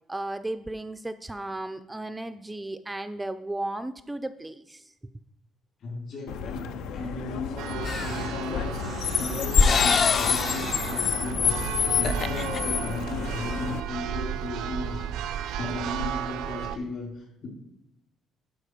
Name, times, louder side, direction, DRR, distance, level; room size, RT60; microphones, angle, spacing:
voice 1, 0.1-4.9, right 1 dB, 10° right, 11 dB, 0.4 m, -35 dB
voice 2, 5.8-17.5, left 2 dB, 60° left, 0 dB, 3.9 m, -36 dB
Car, 6.3-13.8, left 8 dB, 85° left, 0.6 m, -29 dB
Church bell, 7.6-16.8, right 10 dB, 85° right, 0.5 m, -34 dB
sound 1, 7.9-8.3 8.9-11.1 11.5-11.6 11.9-12.6, left 4 dB, 40° left, 0.5 m, -25 dB
11.5 x 5.2 x 4.9 m, 0.84 s
cardioid pair, 125°, 0 cm